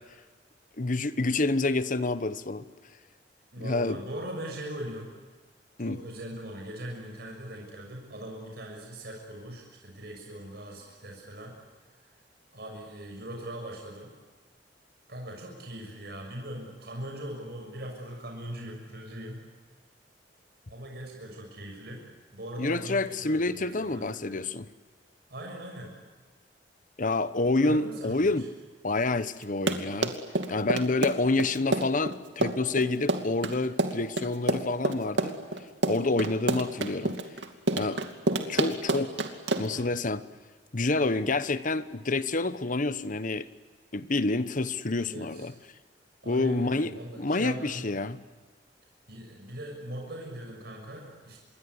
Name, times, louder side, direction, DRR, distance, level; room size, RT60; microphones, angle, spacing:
voice 1, 0.8-2.6 3.6-4.0 5.8-6.0 22.6-24.7 27.0-28.5 28.8-30.2 30.5-35.3 35.8-37.2 37.7-38.0 38.4-39.1 39.6-40.2 40.7-43.5 43.9-45.5 46.3-48.2, left 2 dB, 45° left, 1.1 m, -28 dB
voice 2, 3.5-5.1 5.8-11.5 12.5-14.1 15.1-19.4 20.7-22.0 22.3-24.4 25.3-25.9 27.6-28.5 39.7-39.8 45.0-45.5 46.2-47.9 49.1-51.4, right 1 dB, 60° right, 6.5 m, -40 dB
Run, 29.4-39.8, right 2 dB, 80° right, 2.7 m, -28 dB
27.0 x 22.0 x 9.7 m
head